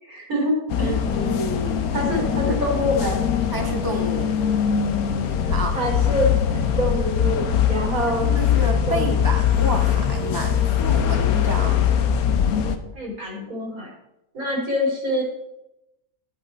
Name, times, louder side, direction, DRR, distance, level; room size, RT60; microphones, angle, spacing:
voice 1, 0.0-1.0 1.9-3.2 5.7-8.3 8.9-9.3 12.9-13.9 14.3-15.2, left 1 dB, 75° right, -2 dB, 4.1 m, -25 dB
sound 1, 0.7-12.8, left 8 dB, 80° left, 1.3 m, -22 dB
voice 2, 0.8-1.9 2.4-2.5 3.5-4.3 5.5-5.7 8.2-11.8, equal, 20° left, 3 dB, 0.8 m, -29 dB
11.0 x 8.8 x 4.3 m, 0.89 s
omnidirectional pair, 1.6 m